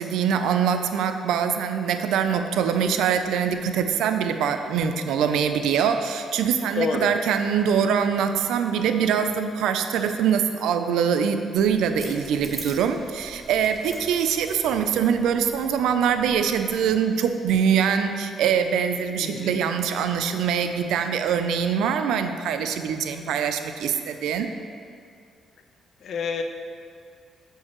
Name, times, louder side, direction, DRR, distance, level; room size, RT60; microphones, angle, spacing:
voice 1, 0.0-24.5, right 7 dB, 85° right, 8 dB, 0.3 m, -23 dB
voice 2, 6.7-7.2 19.2-19.6 26.0-26.4, left 5 dB, 65° left, 6 dB, 0.5 m, -28 dB
sound 1, 11.5-16.9, right 2 dB, 20° right, 0.9 m, -44 dB
7.3 x 4.5 x 3.0 m, 2.3 s
cardioid pair, 90°, 0 cm